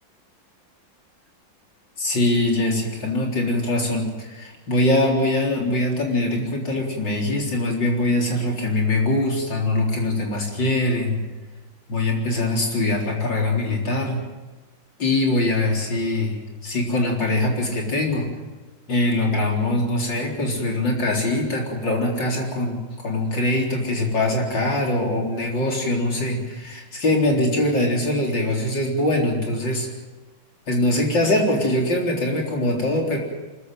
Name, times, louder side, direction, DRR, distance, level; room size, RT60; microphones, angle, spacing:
voice 1, 2.0-11.2 11.9-14.2 15.0-18.3 18.9-22.8 23.0-29.9 30.7-33.2, left 1 dB, 60° left, 0 dB, 4.7 m, -22 dB
24.5 x 14.5 x 9.2 m, 1.2 s
omnidirectional pair, 2.2 m